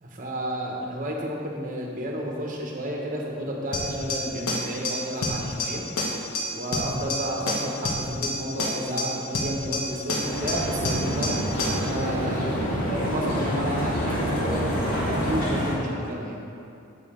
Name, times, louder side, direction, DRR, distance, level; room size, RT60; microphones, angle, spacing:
voice 1, 0.0-5.8 6.5-16.4, equal, 40° right, -1 dB, 1.1 m, -32 dB
sound 1, 3.7-11.9, left 1 dB, 80° left, 1.0 m, -29 dB
sound 2, 10.2-15.7, equal, 40° left, 1.8 m, -27 dB
8.4 x 6.7 x 3.7 m, 2.6 s
head